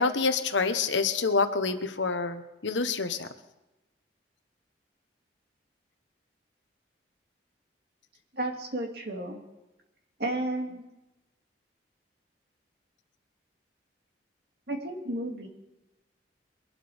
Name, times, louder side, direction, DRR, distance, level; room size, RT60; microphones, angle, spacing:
voice 1, 0.0-3.3, left 4 dB, 90° left, 8 dB, 1.1 m, -27 dB
voice 2, 8.3-9.4 10.2-10.8 14.7-15.5, right 1 dB, 60° right, 1 dB, 2.4 m, -32 dB
22.0 x 12.0 x 3.6 m, 1.0 s
head